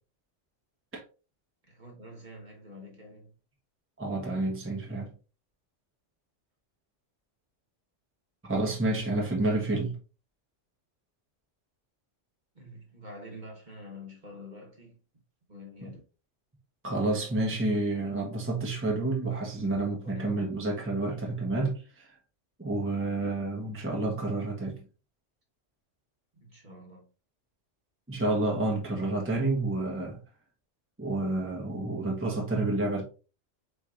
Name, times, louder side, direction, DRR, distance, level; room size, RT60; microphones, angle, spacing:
voice 1, 1.7-3.3 12.5-15.0 15.5-16.0 20.0-20.4 26.3-27.1, left 1 dB, 40° right, 1.4 m, -47 dB
voice 2, 4.0-5.1 8.4-10.0 16.8-22.1 22.6-24.8 28.1-30.2 31.0-33.0, right 2 dB, 10° right, 0.9 m, -29 dB
4.6 x 4.5 x 2.5 m
omnidirectional pair, 1.3 m